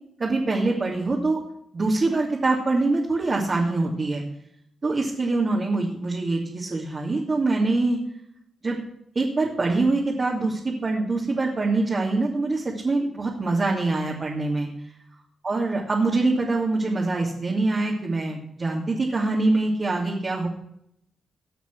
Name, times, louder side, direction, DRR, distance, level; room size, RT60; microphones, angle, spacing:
voice 1, 0.2-1.4 1.7-4.2 4.8-8.0 8.6-8.8 9.1-14.7 15.4-20.5, right 3 dB, 45° right, -2 dB, 2.6 m, -24 dB
18.0 x 6.0 x 6.2 m, 0.75 s
hypercardioid pair, 40°, 0 cm